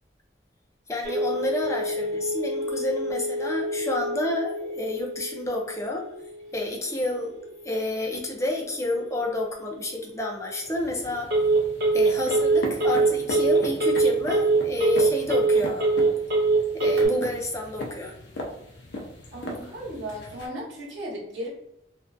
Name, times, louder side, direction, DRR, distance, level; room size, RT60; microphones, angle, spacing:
voice 1, 0.9-6.1 6.5-11.3 11.9-15.9 16.7-18.1, left 1 dB, 15° left, -1 dB, 0.4 m, -29 dB
Telephone, 1.0-17.1, right 3 dB, 60° right, 1.0 m, -26 dB
sound 1, 10.6-20.5, left 1 dB, 70° left, 0.5 m, -39 dB
voice 2, 19.3-21.5, equal, 90° right, -4 dB, 0.9 m, -36 dB
2.5 x 2.3 x 2.2 m, 0.81 s
head